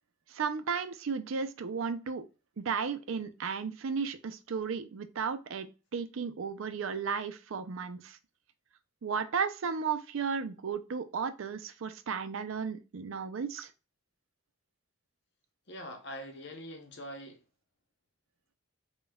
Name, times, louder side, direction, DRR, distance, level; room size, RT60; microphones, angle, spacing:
voice 1, 0.3-2.3 2.6-8.2 9.0-13.7, right 6 dB, 75° right, 0.5 m, -34 dB
voice 2, 15.7-17.4, equal, 55° left, 0.8 m, -43 dB
5.2 x 2.3 x 2.2 m
head